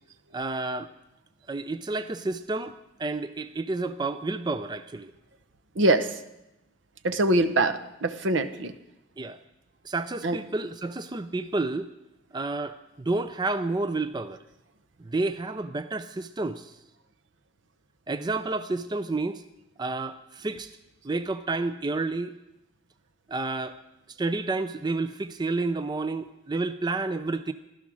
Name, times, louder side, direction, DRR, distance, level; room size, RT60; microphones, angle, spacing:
voice 1, 0.3-0.9 1.5-5.1 9.2-9.4 9.8-11.9 12.3-14.4 15.0-16.8 18.1-19.4 19.8-20.8 21.0-22.3 23.3-23.8 24.1-27.5, right 3 dB, 20° right, 11 dB, 0.5 m, -30 dB
voice 2, 5.8-6.2 7.0-8.7 10.2-10.4, right 2 dB, 70° right, 11 dB, 0.9 m, -23 dB
15.5 x 12.5 x 6.3 m, 0.92 s
head